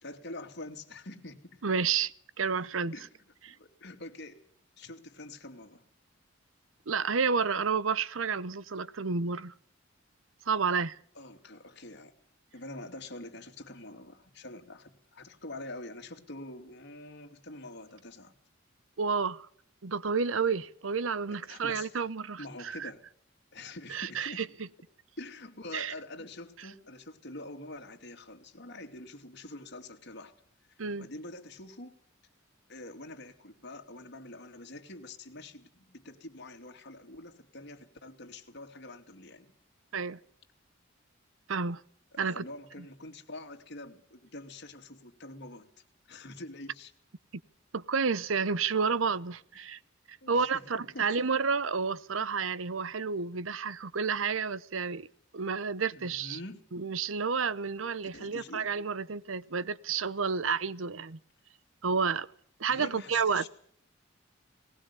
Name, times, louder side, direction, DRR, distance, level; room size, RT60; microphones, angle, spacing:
voice 1, 0.0-1.6 2.9-4.4 4.8-5.8 11.1-12.1 12.5-18.3 21.3-22.0 22.4-23.0 23.5-24.5 25.2-30.4 30.8-32.0 32.7-39.5 42.1-45.7 46.0-46.9 50.2-51.3 55.9-56.6 58.1-58.7 62.7-63.5, left 2 dB, 60° left, 2.7 m, -45 dB
voice 2, 1.6-2.9 6.9-9.5 10.5-11.0 19.0-19.5 19.8-22.9 23.9-24.4 25.7-25.9 30.8-31.1 39.9-40.2 41.5-41.8 42.2-42.4 47.7-49.8 50.3-55.1 55.3-56.4 56.7-61.2 61.8-62.3 62.6-63.4, right 5 dB, 80° right, 0.8 m, -30 dB
19.5 x 19.0 x 7.0 m
head